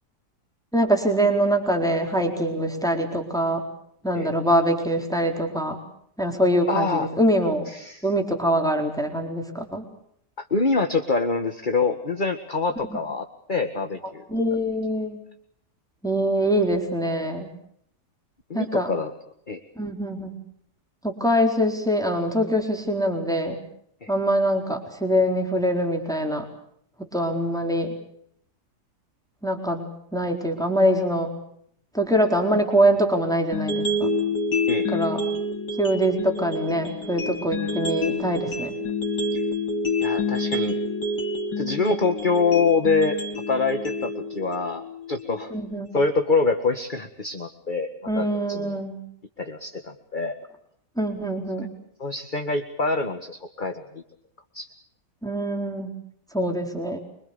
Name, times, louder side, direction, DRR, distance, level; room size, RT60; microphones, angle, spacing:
voice 1, 0.7-3.6 4.0-5.8 6.2-7.7 8.0-9.8 12.9-13.0 14.3-15.2 16.0-17.5 18.5-18.9 19.8-20.4 21.0-23.6 24.1-26.4 27.0-27.9 29.4-29.9 30.1-31.3 31.9-34.1 34.9-35.2 35.8-38.8 45.5-45.9 48.1-49.0 51.0-51.7 55.2-55.9 56.3-57.0, equal, ahead, 3 dB, 4.2 m, -24 dB
voice 2, 6.7-7.1 7.7-8.1 10.4-14.2 14.5-14.6 18.5-19.1 19.5-19.6 24.0-24.1 34.7-35.2 39.3-39.4 40.0-40.8 41.6-43.2 43.5-44.8 45.1-45.5 45.9-47.9 48.1-48.8 49.4-50.4 52.0-54.0 54.5-54.7, left 4 dB, 30° left, 5 dB, 1.9 m, -25 dB
sound 1, 33.5-45.5, left 2 dB, 75° left, 3.5 m, -28 dB
25.5 x 25.5 x 6.8 m, 0.70 s
omnidirectional pair, 1.8 m